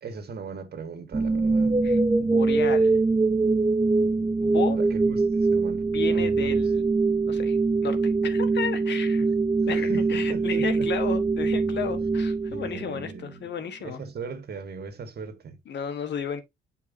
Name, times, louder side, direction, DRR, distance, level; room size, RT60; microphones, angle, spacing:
voice 1, 0.0-1.8 4.7-6.8 9.8-10.9 12.5-13.5 13.8-15.6, right 5 dB, 55° right, 1.9 m, -38 dB
sound 1, 1.1-13.2, right 3 dB, 15° right, 0.6 m, -23 dB
voice 2, 1.8-3.0 4.4-4.8 5.9-6.9 7.3-7.6 7.8-9.3 9.7-14.0 15.7-16.4, left 7 dB, 60° left, 1.5 m, -33 dB
9.2 x 5.5 x 2.8 m
cardioid pair, 90°, 20 cm